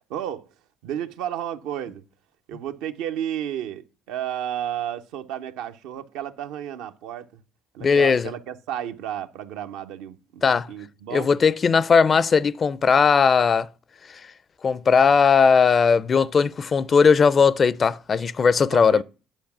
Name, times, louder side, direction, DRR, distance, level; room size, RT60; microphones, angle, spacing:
voice 1, 0.1-0.5 0.8-2.0 2.5-7.3 7.7-11.3 18.7-19.0, right 10 dB, 80° right, 0.7 m, -32 dB
voice 2, 7.8-8.3 10.4-10.7 11.1-13.7 14.6-19.0, left 5 dB, 40° left, 0.5 m, -18 dB
9.2 x 4.9 x 5.9 m
supercardioid pair, 70°, 0 cm